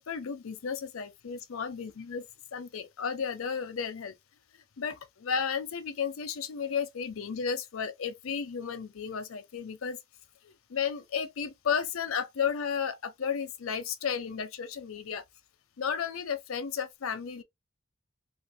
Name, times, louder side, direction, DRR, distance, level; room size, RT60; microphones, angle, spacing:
voice 1, 0.0-2.3 2.5-4.1 4.8-10.0 10.4-15.2 15.8-17.4, left 6 dB, 90° left, 0.5 m, -33 dB
2.5 x 2.5 x 3.4 m
head